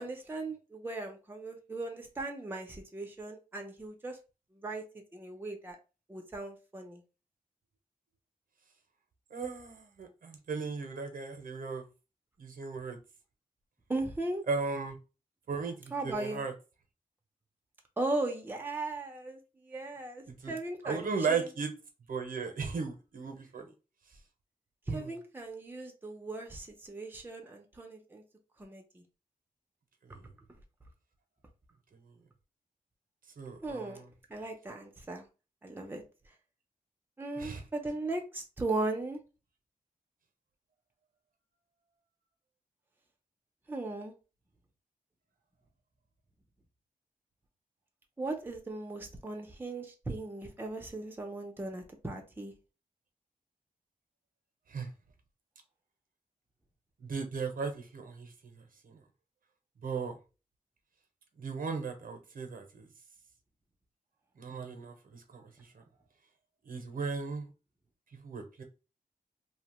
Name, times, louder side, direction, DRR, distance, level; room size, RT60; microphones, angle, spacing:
voice 1, 0.0-4.2 4.5-4.8 5.1-5.8 6.1-7.0 13.9-14.4 15.9-16.4 18.0-21.5 24.9-28.2 28.6-29.0 33.6-34.0 34.3-35.3 35.6-36.0 37.2-39.2 43.7-44.1 48.2-52.5, right 2 dB, 15° right, 0.5 m, -37 dB
voice 2, 9.3-11.8 12.4-13.0 14.4-14.9 15.5-16.5 20.3-20.6 20.8-21.7 22.1-23.7 24.9-25.1 30.1-30.2 33.4-34.1 37.4-37.6 54.7-54.9 57.0-58.3 58.6-59.0 59.8-60.2 61.4-62.9 64.4-65.5 65.7-65.8 66.7-67.5 68.2-68.6, right 5 dB, 75° right, 0.6 m, -36 dB
2.8 x 2.1 x 2.8 m
wide cardioid pair, 135°, 15 cm